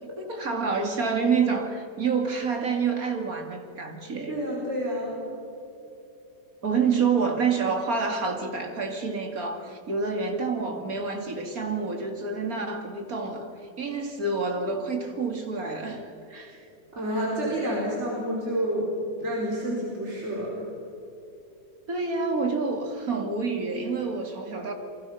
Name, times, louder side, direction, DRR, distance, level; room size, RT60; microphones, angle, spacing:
voice 1, 0.0-4.3 6.6-13.5 13.8-16.7 21.9-24.7, right 4 dB, 60° right, 4 dB, 2.7 m, -28 dB
voice 2, 4.3-5.2 16.9-18.9 19.2-20.5, equal, 40° right, -4 dB, 4.8 m, -29 dB
29.0 x 23.0 x 5.7 m, 2.8 s
omnidirectional pair, 1.8 m